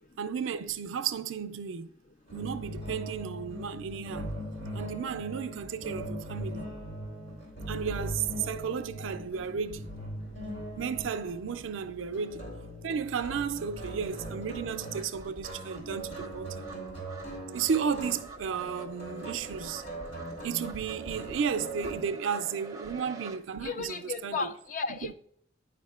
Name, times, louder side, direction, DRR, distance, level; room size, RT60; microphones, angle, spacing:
voice 1, 0.2-1.9 2.3-4.3 4.7-6.7 7.7-9.9 10.8-12.5 12.8-16.7 17.5-19.8 20.4-24.4 24.9-25.1, right 6 dB, 85° right, 0.4 m, -33 dB
sound 1, 2.3-22.1, right 1 dB, 65° left, 2.5 m, -40 dB
sound 2, 13.3-13.4 13.7-23.4, right 3 dB, 20° right, 0.5 m, -48 dB
voice 2, 23.6-25.1, left 4 dB, 40° left, 0.4 m, -34 dB
9.3 x 4.9 x 2.3 m
head